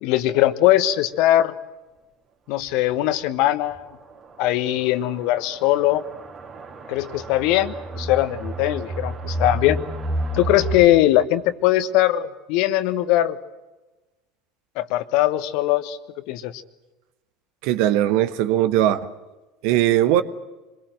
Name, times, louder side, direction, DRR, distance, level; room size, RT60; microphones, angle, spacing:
voice 1, 0.0-1.5 2.5-3.9 4.4-6.0 6.9-9.8 10.3-13.4 14.8-16.0 16.3-16.5, left 14 dB, 55° left, 1.3 m, -20 dB
sound 1, 2.6-2.7 3.1-3.2 3.7-3.8 4.7-10.9, right 1 dB, 35° right, 3.4 m, -30 dB
voice 2, 17.6-19.1 19.6-20.2, right 12 dB, 60° right, 1.4 m, -19 dB
26.0 x 22.0 x 7.8 m
figure-of-eight pair, 70°, 0 cm